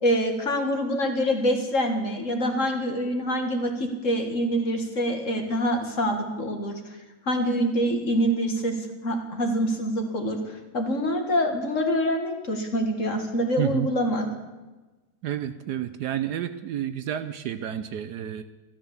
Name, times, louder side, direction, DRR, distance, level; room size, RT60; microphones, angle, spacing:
voice 1, 0.0-6.8 7.3-8.8 9.0-14.3, equal, 45° left, 4 dB, 2.0 m, -25 dB
voice 2, 13.6-13.9 15.2-18.4, right 11 dB, 70° right, 11 dB, 1.1 m, -30 dB
14.5 x 13.0 x 7.1 m, 1.2 s
omnidirectional pair, 2.0 m